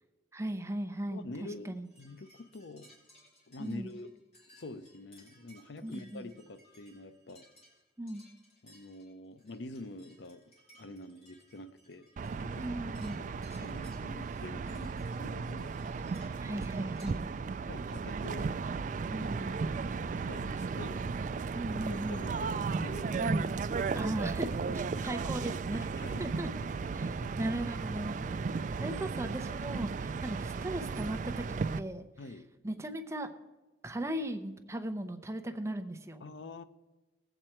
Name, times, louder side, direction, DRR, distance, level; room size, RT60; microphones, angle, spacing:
voice 1, 0.3-1.9 3.6-3.9 5.8-6.3 8.0-8.3 12.6-13.2 16.4-17.2 19.1-19.5 21.5-22.2 23.2-23.5 23.9-24.5 24.7-25.8 26.2-26.5 26.9-27.1 27.4-28.4 28.8-32.1 32.6-33.3 33.8-36.2, right 1 dB, 15° right, 6 dB, 0.7 m, -37 dB
voice 2, 1.1-2.9 3.5-4.1 4.6-7.5 8.6-10.4 10.8-12.6 13.2-15.8 17.7-18.5 19.1-19.7 20.3-21.1 21.9-23.4 23.9-24.2 24.7-25.2 25.8-26.2 26.8-27.3 28.6-28.7 32.2-32.5 36.2-36.6, left 2 dB, 80° left, 12 dB, 0.6 m, -46 dB
sound 1, 1.8-17.1, equal, 35° left, 3.5 m, -62 dB
sound 2, 12.2-31.8, right 4 dB, 45° right, 0.3 m, -35 dB
19.0 x 8.0 x 4.4 m, 1.2 s
head